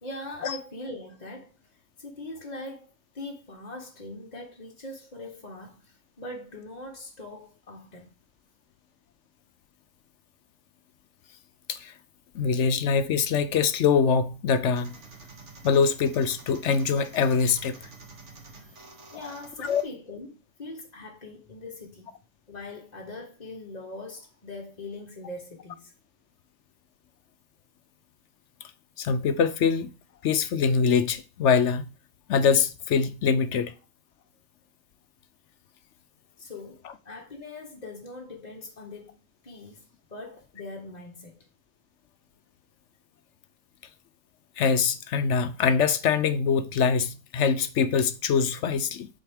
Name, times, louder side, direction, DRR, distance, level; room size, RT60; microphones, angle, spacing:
voice 1, 0.0-2.9 3.1-8.1 18.6-18.8 19.1-22.1 22.5-25.9 36.4-39.2 39.4-41.5, left 2 dB, 35° left, 0.9 m, -41 dB
voice 2, 12.3-15.0 15.6-17.8 19.6-19.8 29.0-29.9 30.2-31.9 32.3-33.7 44.6-49.1, left 6 dB, 65° left, 0.9 m, -23 dB
sound 1, 14.7-19.8, right 3 dB, 55° right, 1.9 m, -48 dB
7.6 x 4.2 x 3.5 m
omnidirectional pair, 1.5 m